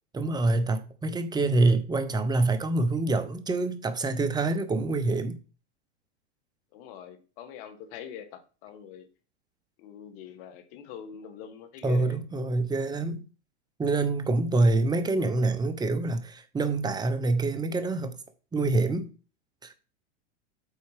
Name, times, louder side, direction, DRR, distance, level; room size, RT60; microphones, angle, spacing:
voice 1, 0.1-5.4 11.8-13.3 13.8-18.2 18.5-19.1 19.6-19.7, right 2 dB, 10° right, 0.8 m, -26 dB
voice 2, 6.7-9.1 9.8-12.2, left 8 dB, 55° left, 1.6 m, -44 dB
8.2 x 4.3 x 4.9 m
hypercardioid pair, 120°, 34 cm